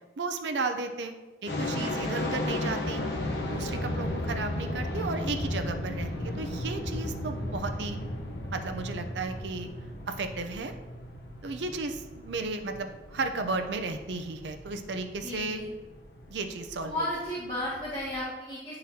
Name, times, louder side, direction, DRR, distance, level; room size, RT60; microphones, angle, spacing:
voice 1, 0.2-1.1 1.4-3.0 3.5-8.0 8.5-9.7 10.1-10.7 11.4-15.6 16.3-16.9, right 3 dB, 85° right, 6 dB, 0.5 m, -34 dB
sound 1, 1.5-18.2, left 1 dB, 75° left, 0.9 m, -35 dB
voice 2, 15.2-15.7 16.8-18.8, left 1 dB, 30° left, -11 dB, 1.8 m, -34 dB
10.0 x 3.9 x 2.8 m, 1.2 s
head